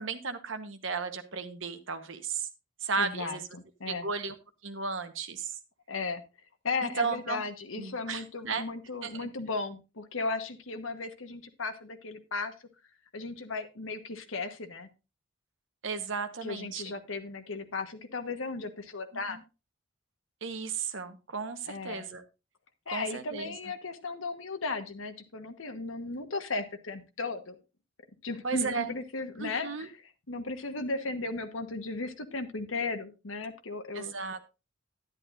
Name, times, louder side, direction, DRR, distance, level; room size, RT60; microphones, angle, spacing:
voice 1, 0.0-2.5 2.8-3.5 3.9-4.3 4.6-5.5 6.8-7.4 7.8-8.6 9.0-9.3 15.8-16.8 20.4-22.2 22.9-23.5 28.4-28.9 29.4-29.9 33.9-34.4, right 5 dB, 75° right, 8 dB, 1.1 m, -34 dB
voice 2, 3.0-4.1 5.9-6.2 6.6-12.5 13.1-14.9 16.4-19.4 21.7-22.0 22.9-27.6 28.2-30.0 30.3-34.1, left 3 dB, 85° left, 8 dB, 1.3 m, -36 dB
11.0 x 10.5 x 2.5 m, 0.29 s
head